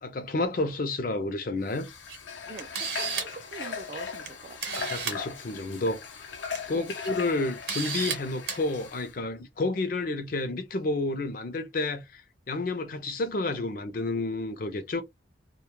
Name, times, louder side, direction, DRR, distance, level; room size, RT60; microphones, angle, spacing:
voice 1, 0.0-1.9 4.8-6.3 6.7-15.0, left 2 dB, 50° left, 0.5 m, -30 dB
Water / Water tap faucet, 1.6-9.1, left 6 dB, 85° left, 0.7 m, -39 dB
Camera, 2.1-2.2 2.6-3.4 4.3-4.4 4.6-5.2 6.3-6.6 7.0-7.1 7.7-8.2 8.5-8.6, right 6 dB, 60° right, 0.8 m, -32 dB
voice 2, 2.5-4.9 6.7-6.9, right 4 dB, 40° right, 0.3 m, -44 dB
2.2 x 2.1 x 3.0 m
head